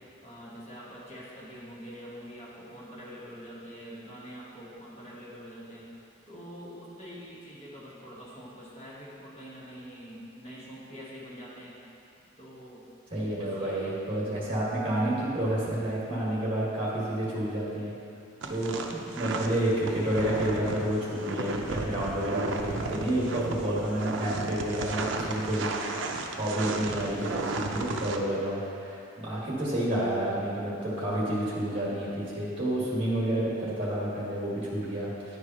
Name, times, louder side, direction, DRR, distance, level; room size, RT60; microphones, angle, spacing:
voice 1, 0.2-5.9 6.3-11.8 12.4-12.9 13.3-14.0 18.4-18.7, equal, 30° left, -8 dB, 1.5 m, -45 dB
voice 2, 13.1-17.9 18.5-35.4, right 1 dB, 25° right, -6 dB, 1.7 m, -30 dB
sound 1, 18.4-28.2, right 3 dB, 70° right, 0.5 m, -34 dB
10.0 x 4.8 x 2.9 m, 2.6 s
head